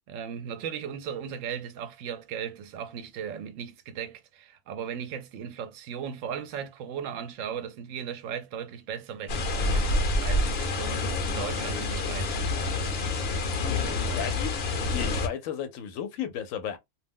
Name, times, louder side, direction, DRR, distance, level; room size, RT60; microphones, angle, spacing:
voice 1, 0.1-12.9 13.7-14.3, right 8 dB, 75° right, 0.9 m, -37 dB
sound 1, 9.3-15.3, left 2 dB, 55° left, 0.8 m, -28 dB
voice 2, 14.0-14.6 14.9-16.8, left 9 dB, 80° left, 1.0 m, -34 dB
2.5 x 2.1 x 3.5 m
omnidirectional pair, 1.4 m